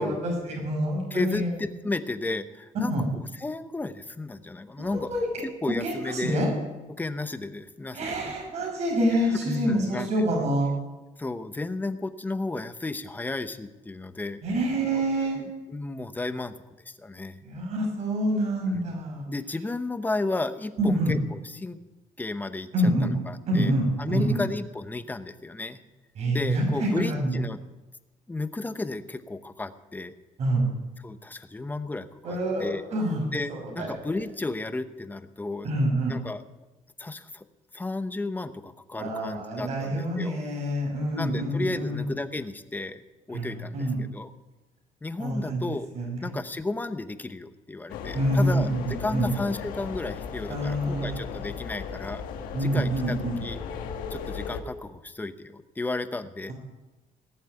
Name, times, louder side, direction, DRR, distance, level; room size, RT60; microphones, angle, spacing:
voice 1, 0.0-1.5 2.8-3.1 4.8-5.3 5.8-6.5 7.9-10.7 14.4-15.4 17.4-19.3 20.8-21.1 22.7-23.1 23.4-24.4 26.2-27.3 30.4-30.7 32.2-34.0 35.6-36.1 39.0-42.0 43.3-44.0 45.2-45.6 45.9-46.3 48.1-49.3 50.5-51.2 52.5-53.4, right 1 dB, 55° right, 0 dB, 6.1 m, -27 dB
voice 2, 1.1-2.9 3.4-5.1 5.4-6.4 6.9-8.3 9.5-10.1 11.2-14.4 15.3-16.5 16.9-17.4 18.7-18.8 19.3-21.8 22.2-22.7 23.0-23.7 24.0-25.8 26.3-27.6 28.3-30.1 31.0-32.8 33.3-35.7 36.1-36.4 37.0-37.4 37.7-40.4 41.2-43.0 43.3-44.3 45.0-45.9 46.2-48.7 49.0-52.2 52.6-53.6 54.1-56.5, left 2 dB, 15° left, 11 dB, 0.8 m, -33 dB
sound 1, 47.9-54.6, left 6 dB, 85° left, 1.7 m, -36 dB
19.0 x 7.3 x 8.8 m, 1.1 s
cardioid pair, 125°, 14 cm